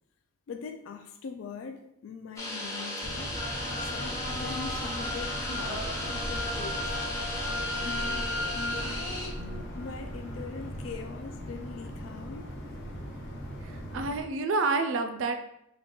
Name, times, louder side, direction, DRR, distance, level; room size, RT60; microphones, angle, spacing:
voice 1, 0.5-3.4 3.8-7.0 7.8-8.3 8.5-9.5 9.7-12.5, left 5 dB, 80° left, 0.3 m, -42 dB
sound 1, 2.4-9.3, left 1 dB, 15° left, 0.6 m, -36 dB
sound 2, 3.0-14.2, equal, 65° left, 0.9 m, -40 dB
sound 3, 3.3-11.0, left 1 dB, 40° left, 1.1 m, -37 dB
voice 2, 13.9-15.3, right 3 dB, 80° right, 0.4 m, -28 dB
3.6 x 2.3 x 3.7 m
head